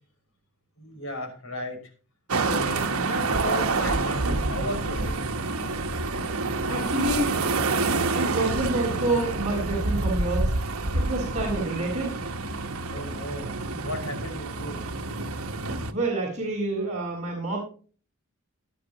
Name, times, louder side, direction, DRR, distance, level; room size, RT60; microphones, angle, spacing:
voice 1, 0.8-1.8 2.4-5.2 12.9-13.5 13.8-14.8, left 1 dB, 65° left, 3 dB, 5.8 m, -34 dB
sound 1, 2.3-15.9, right 3 dB, 75° right, 1.3 m, -27 dB
voice 2, 6.7-7.4 8.1-10.5 10.9-12.2 15.9-17.6, right 2 dB, 35° right, -4 dB, 6.0 m, -28 dB
17.5 x 11.5 x 3.0 m, 0.39 s
head